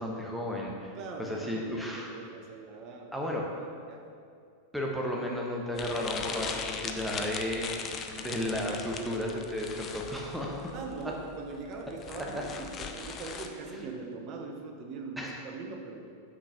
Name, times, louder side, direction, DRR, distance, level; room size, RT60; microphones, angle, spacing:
voice 1, 0.0-0.9 1.2-2.1 3.1-3.5 4.7-10.7 12.2-12.4 13.7-13.8 15.2-15.4, left 1 dB, 5° right, -2 dB, 1.0 m, -34 dB
voice 2, 1.0-3.3 3.6-4.1 10.7-16.1, right 4 dB, 40° right, 3 dB, 1.0 m, -41 dB
sound 1, 5.8-13.5, left 6 dB, 30° left, 0.6 m, -39 dB
6.4 x 6.1 x 5.6 m, 2.4 s
figure-of-eight pair, 90°, 0 cm